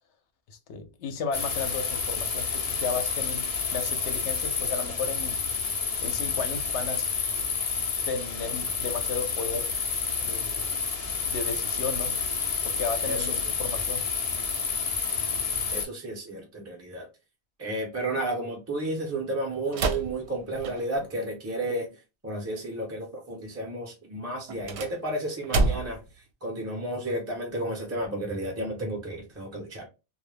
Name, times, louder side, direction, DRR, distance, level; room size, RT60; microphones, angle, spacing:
voice 1, 0.5-5.4 6.0-7.1 8.1-9.7 10.2-10.8 11.3-12.1 12.6-14.0, left 5 dB, 80° left, 0.8 m, -34 dB
sound 1, 1.3-15.8, left 5 dB, 50° left, 0.4 m, -29 dB
voice 2, 13.0-13.4 15.7-17.1 17.6-29.9, right 1 dB, 20° right, 0.5 m, -32 dB
sound 2, 19.7-21.1 24.4-26.1, right 3 dB, 75° right, 0.8 m, -29 dB
2.2 x 2.0 x 3.1 m
omnidirectional pair, 1.2 m